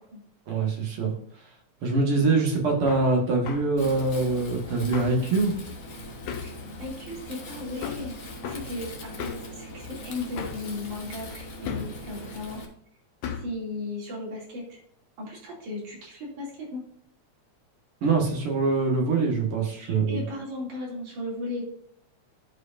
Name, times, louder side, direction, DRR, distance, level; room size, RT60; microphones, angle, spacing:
voice 1, 0.5-1.1 1.8-5.5 18.0-20.2, right 3 dB, 50° right, 0 dB, 2.3 m, -24 dB
Hammer, 2.9-3.1 3.4-3.7 4.9-5.2 6.3-6.6 7.8-8.1 8.4-8.7 9.2-9.5 10.4-10.7 11.6-12.0 13.2-13.5, left 7 dB, 70° left, 2.1 m, -35 dB
Wind, 3.8-12.6, left 1 dB, 55° left, 1.0 m, -41 dB
voice 2, 6.8-8.2 8.4-12.6 13.4-14.8 15.2-16.8 19.6-21.6, left 2 dB, 75° right, -4 dB, 4.1 m, -36 dB
12.0 x 4.9 x 2.6 m, 0.67 s
omnidirectional pair, 3.4 m